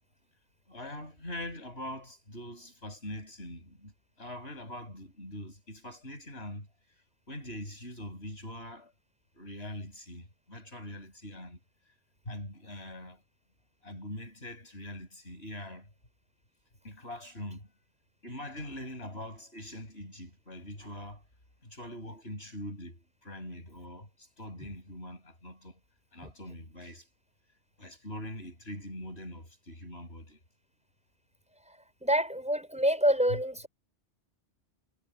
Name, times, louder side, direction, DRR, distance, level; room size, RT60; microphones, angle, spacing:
voice 1, 0.7-3.9 4.2-6.7 7.3-8.9 9.3-11.6 12.2-13.2 13.8-15.9 16.8-17.7 18.2-21.2 21.6-25.8 26.1-27.1 27.8-30.4 33.3-33.4, left 1 dB, 60° left, 8.4 m, -43 dB
voice 2, 32.0-33.7, equal, 5° right, 5.2 m, -26 dB
omnidirectional pair, 1.2 m